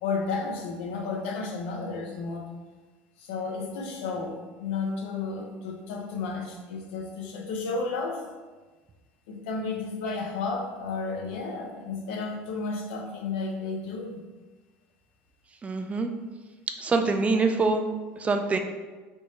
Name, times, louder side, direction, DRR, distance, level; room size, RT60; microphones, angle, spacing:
voice 1, 0.0-2.5 3.2-8.3 9.3-14.2, left 4 dB, 85° left, 3 dB, 0.6 m, -32 dB
voice 2, 15.6-16.1 16.8-17.8 18.2-18.6, right 3 dB, 25° right, 5 dB, 0.3 m, -24 dB
3.4 x 2.7 x 3.1 m, 1.3 s
supercardioid pair, 105°, 6 cm